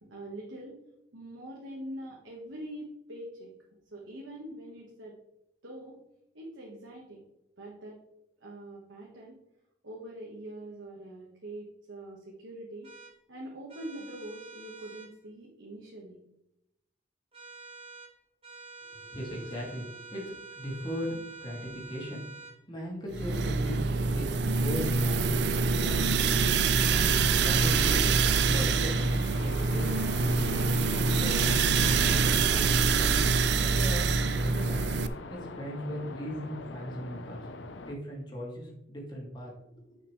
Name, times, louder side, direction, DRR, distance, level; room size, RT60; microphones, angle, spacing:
voice 1, 0.0-0.8 1.1-5.2 5.6-6.0 6.3-7.2 7.6-8.0 8.4-9.4 9.8-12.9 13.3-16.2, right 1 dB, 90° right, -2 dB, 1.5 m, -43 dB
sound 1, 12.8-13.1 13.7-15.1 17.3-18.1 18.4-22.6, right 4 dB, 30° right, 1.7 m, -47 dB
voice 2, 19.0-22.2 22.7-25.3 25.8-26.2 26.8-28.1 28.5-29.0 29.4-30.3 30.7-33.2 33.6-34.1 34.4-37.5 37.8-40.0, equal, 25° left, -3 dB, 2.4 m, -39 dB
sound 2, 23.1-35.1, right 4 dB, 65° right, 0.5 m, -25 dB
sound 3, 26.8-38.0, left 3 dB, 75° left, 0.6 m, -42 dB
9.9 x 5.9 x 3.2 m, 0.84 s
head